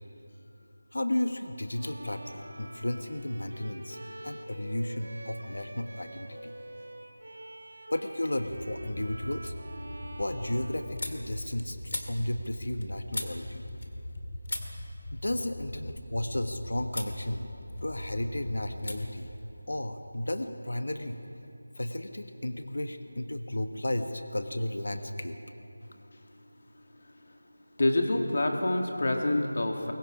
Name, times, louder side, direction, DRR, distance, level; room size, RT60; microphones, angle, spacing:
voice 1, 0.9-4.0 4.2-6.5 7.9-9.5 10.2-13.7 15.1-17.4 17.8-19.3 19.7-21.2 21.7-25.4, left 1 dB, 85° left, 7 dB, 1.4 m, -33 dB
Bowed string instrument, 1.7-11.5, right 1 dB, 75° right, 2.8 m, -46 dB
sound 1, 8.4-19.0, left 1 dB, 20° left, 4.7 m, -42 dB
sound 2, 9.9-14.2 14.4-16.5 16.9-17.2 17.5-18.3 18.8-19.0 19.2-20.3, left 1 dB, 70° left, 2.5 m, -42 dB
voice 2, 27.8-29.9, left 1 dB, 45° left, 3 dB, 2.0 m, -26 dB
26.5 x 22.5 x 5.1 m, 2.8 s
figure-of-eight pair, 180°, 0 cm